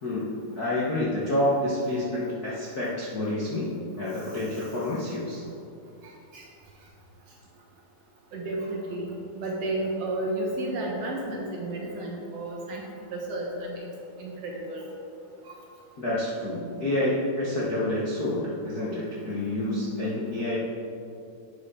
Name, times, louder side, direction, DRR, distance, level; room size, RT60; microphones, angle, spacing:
voice 1, 0.0-3.7 4.0-5.4 16.0-20.6, left 1 dB, 55° left, -8 dB, 1.0 m, -28 dB
voice 2, 8.3-13.9 14.2-14.9 15.5-15.6, right 2 dB, 65° right, -1 dB, 1.9 m, -32 dB
11.0 x 8.2 x 3.8 m, 2.6 s
omnidirectional pair, 3.7 m